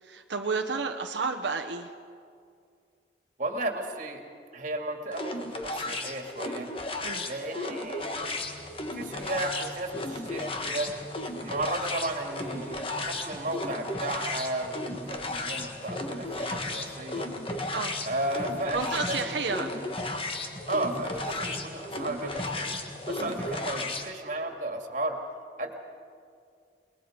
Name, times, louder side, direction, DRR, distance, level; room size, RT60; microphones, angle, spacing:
voice 1, 0.0-1.9 7.0-7.3 17.7-18.0 18.7-19.7 23.2-23.4, right 4 dB, 90° right, 3 dB, 1.1 m, -31 dB
voice 2, 3.4-4.2 4.5-6.7 7.2-8.3 8.9-10.9 11.3-17.3 18.1-19.9 20.7-22.7 23.1-25.2 25.6-25.7, right 1 dB, 45° right, 3 dB, 2.4 m, -34 dB
sound 1, 5.1-24.1, left 2 dB, 30° left, 1.5 m, -35 dB
sound 2, 8.2-24.0, equal, 10° left, 2.3 m, -43 dB
29.0 x 21.0 x 5.2 m, 2.2 s
head